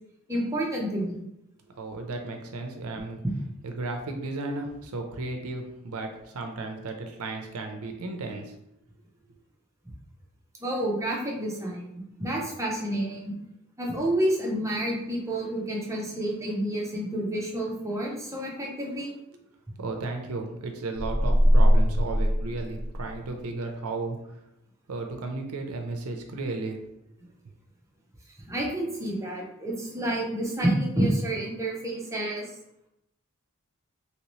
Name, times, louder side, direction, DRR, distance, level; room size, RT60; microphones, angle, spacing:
voice 1, 0.3-1.2 10.6-13.3 13.8-19.1 28.5-32.5, right 1 dB, 15° right, -2 dB, 0.6 m, -29 dB
voice 2, 1.7-3.2 3.6-8.5 19.8-24.2 24.9-26.8, right 3 dB, 75° right, 4 dB, 0.5 m, -34 dB
sound 1, 21.0-23.4, equal, 15° left, 1.2 m, -21 dB
3.0 x 2.9 x 3.0 m, 0.82 s
head